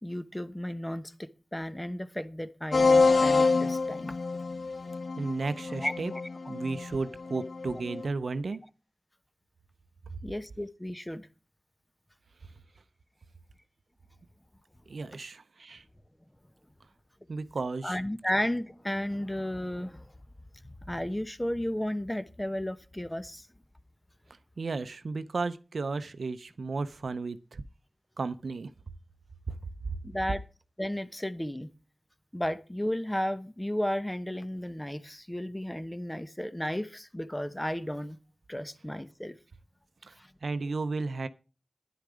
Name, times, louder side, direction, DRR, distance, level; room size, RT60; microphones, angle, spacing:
voice 1, 0.0-4.2 5.7-6.2 10.2-11.3 17.8-20.1 20.8-23.5 30.0-30.4 30.8-31.7 32.3-38.2 38.5-39.4 40.2-40.3, equal, 15° left, 1.0 m, -33 dB
sound 1, 2.7-8.1, left 4 dB, 80° left, 0.7 m, -27 dB
voice 2, 5.2-6.1 6.5-8.6 14.9-15.8 17.3-18.0 24.6-27.6 28.2-28.7 29.5-29.6 40.1-40.2 40.4-41.3, right 3 dB, 85° right, 0.7 m, -33 dB
10.5 x 10.5 x 4.9 m
wide cardioid pair, 50°, 0 cm